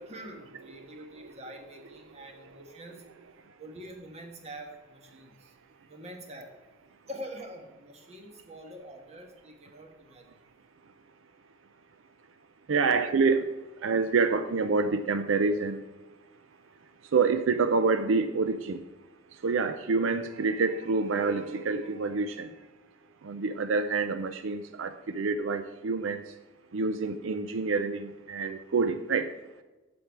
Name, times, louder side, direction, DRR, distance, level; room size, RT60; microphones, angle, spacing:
voice 1, 0.0-3.0 3.6-5.5 5.9-6.5 7.1-10.2 12.7-12.9, equal, 30° right, 4 dB, 1.3 m, -45 dB
voice 2, 12.7-13.5 13.8-15.8 17.1-18.8 19.4-22.5 23.2-26.2 26.7-29.3, right 4 dB, 75° right, 10 dB, 0.5 m, -27 dB
7.8 x 7.2 x 4.5 m, 1.1 s
head